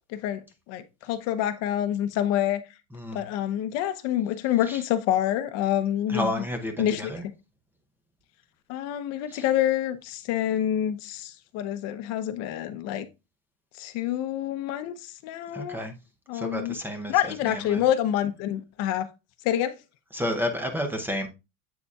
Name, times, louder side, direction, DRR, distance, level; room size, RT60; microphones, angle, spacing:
voice 1, 0.1-0.4 0.7-2.6 3.1-6.4 6.8-7.1 8.7-13.1 13.8-15.8 16.3-16.8 17.1-19.1 19.4-19.8, left 11 dB, 40° left, 0.8 m, -27 dB
voice 2, 2.9-3.2 4.7-4.8 6.1-7.3 9.3-9.4 15.5-15.9 16.3-17.1 17.4-17.8 20.1-21.3, equal, 5° right, 0.7 m, -31 dB
8.3 x 6.7 x 2.4 m
supercardioid pair, 165°, 40 cm